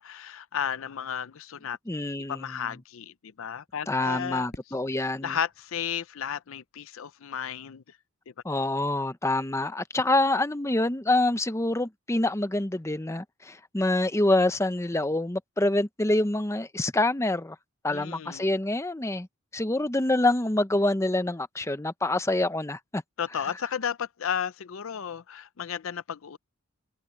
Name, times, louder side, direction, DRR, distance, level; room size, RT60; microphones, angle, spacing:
voice 1, 0.0-1.8 2.3-4.5 5.2-7.8 17.9-18.5 23.2-26.4, left 8 dB, 70° left, 0.5 m, -33 dB
voice 2, 1.9-2.5 3.9-5.4 8.4-17.6 17.8-19.3 19.5-23.0, left 2 dB, 15° left, 0.7 m, -26 dB
Fireworks, 4.5-7.4, left 1 dB, 50° left, 6.0 m, -52 dB
open air
head